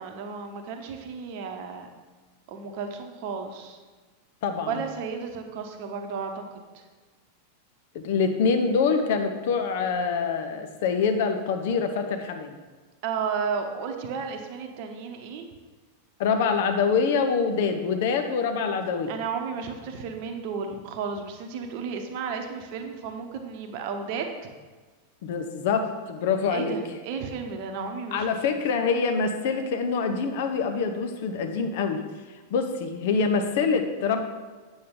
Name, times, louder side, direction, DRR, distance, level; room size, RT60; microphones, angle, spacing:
voice 1, 0.0-1.9 2.5-3.8 4.7-6.4 6.7-6.8 13.0-15.4 19.1-24.3 26.5-28.3, right 5 dB, 45° right, 5 dB, 0.9 m, -33 dB
voice 2, 4.4-4.8 7.9-12.6 16.2-19.1 25.2-26.8 28.1-32.0 32.5-34.2, left 5 dB, 50° left, 6 dB, 0.8 m, -25 dB
8.6 x 7.0 x 3.8 m, 1.3 s
figure-of-eight pair, 90°, 0 cm